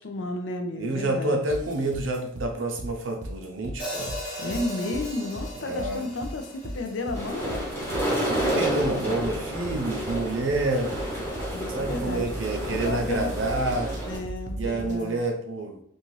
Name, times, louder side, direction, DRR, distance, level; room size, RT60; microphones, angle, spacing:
voice 1, 0.0-1.4 4.4-7.6 11.5-12.3 12.7-13.3 14.1-15.2, left 2 dB, 75° left, 5 dB, 0.4 m, -32 dB
voice 2, 0.8-4.1 5.5-6.1 7.3-7.9 8.2-10.9 11.7-13.9 14.6-15.8, right 2 dB, 85° right, 3 dB, 0.6 m, -29 dB
sound 1, 1.5-15.1, right 1 dB, 40° right, 0.4 m, -37 dB
Hi-hat, 3.8-8.0, equal, 45° left, 1.1 m, -38 dB
sound 2, 7.1-14.2, equal, 15° left, 1.0 m, -30 dB
2.6 x 2.3 x 3.1 m, 0.68 s
head